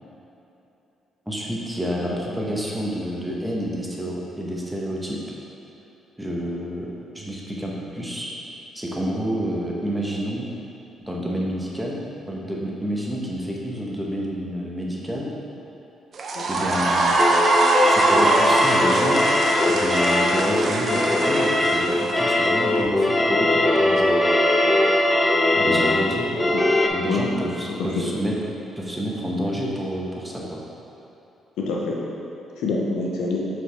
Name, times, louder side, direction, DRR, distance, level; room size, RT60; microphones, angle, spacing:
voice 1, 1.3-5.2 6.2-8.3 8.7-10.5 11.1-12.0 12.3-15.3 16.5-17.2 17.9-19.2 19.7-24.1 25.6-26.3 26.9-28.4 28.8-30.6, equal, 5° right, -4 dB, 1.1 m, -29 dB
sound 1, 16.1-22.5, right 2 dB, 50° right, 0.7 m, -22 dB
voice 2, 16.3-16.7 25.6-25.9 26.5-26.6 27.1-27.3 27.7-28.1 31.6-32.0 32.6-33.5, left 3 dB, 85° left, -3 dB, 0.9 m, -26 dB
sound 2, 17.2-26.9, left 1 dB, 10° left, 0.6 m, -20 dB
7.0 x 4.7 x 3.4 m, 3.0 s
cardioid pair, 90°, 0 cm